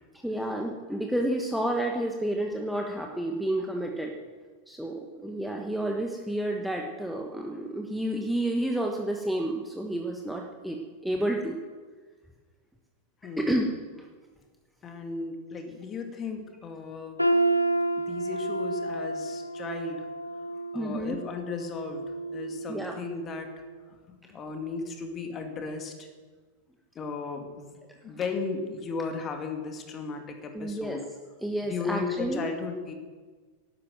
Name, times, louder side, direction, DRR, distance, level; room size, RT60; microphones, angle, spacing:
voice 1, 0.1-4.1 4.7-11.6 13.4-13.7 20.7-21.2 22.7-23.0 30.5-31.0 31.4-32.4, right 1 dB, ahead, 1 dB, 1.3 m, -30 dB
voice 2, 13.2-13.6 14.8-17.2 18.0-20.1 20.7-23.5 24.3-26.1 26.9-27.8 28.0-31.0 31.7-32.9, left 4 dB, 25° left, 4 dB, 2.5 m, -35 dB
sound 1, 17.2-23.1 23.5-23.8 24.5-24.6, right 2 dB, 90° left, 0.8 m, -30 dB
12.5 x 11.5 x 7.8 m, 1.4 s
figure-of-eight pair, 90°, 0 cm